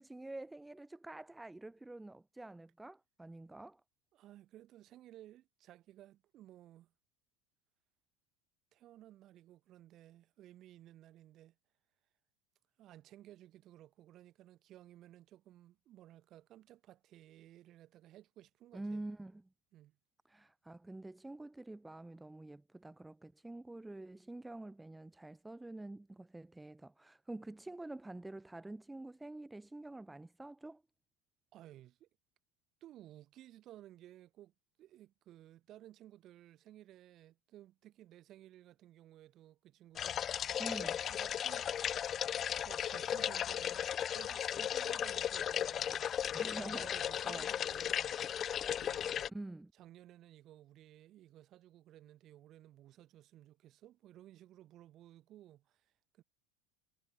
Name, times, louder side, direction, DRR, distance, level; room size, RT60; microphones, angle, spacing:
voice 1, 0.0-3.8 18.7-19.4 20.3-30.8 40.6-41.0 46.3-46.9 47.2-47.5 49.3-49.7, right 2 dB, 10° right, 0.8 m, -47 dB
voice 2, 4.1-6.9 8.7-11.6 12.8-19.0 19.7-20.0 31.5-32.1 32.8-34.5 34.8-41.7 42.6-46.1 46.4-48.5 48.8-49.3 49.7-56.2, right 13 dB, 50° right, 2.4 m, -57 dB
sound 1, 40.0-49.3, left 9 dB, 40° left, 0.3 m, -36 dB
hypercardioid pair, 90°, 0 cm